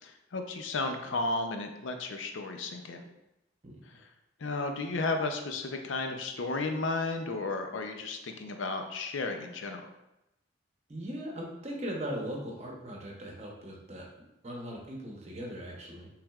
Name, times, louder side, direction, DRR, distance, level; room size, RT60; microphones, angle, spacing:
voice 1, 0.0-3.1 3.9-4.1 4.4-9.9, left 3 dB, 80° left, 5 dB, 0.5 m, -33 dB
voice 2, 10.9-14.1 14.4-16.1, equal, 35° right, -1 dB, 0.8 m, -39 dB
6.1 x 3.3 x 2.4 m, 0.89 s
head